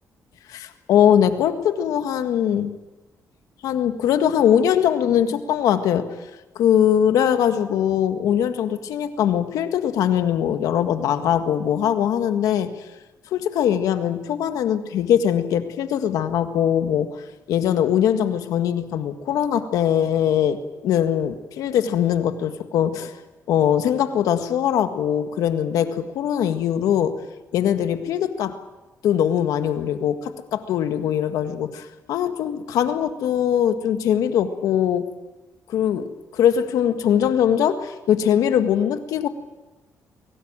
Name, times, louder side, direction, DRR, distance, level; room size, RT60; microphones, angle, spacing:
voice 1, 0.5-2.8 3.6-6.1 6.6-12.7 13.3-17.2 17.5-20.6 20.8-23.1 23.5-27.2 27.5-28.6 29.0-35.1 35.7-39.3, left 9 dB, 85° left, 8 dB, 1.8 m, -21 dB
23.0 x 18.5 x 9.0 m, 1.1 s
cardioid pair, 110°, 6 cm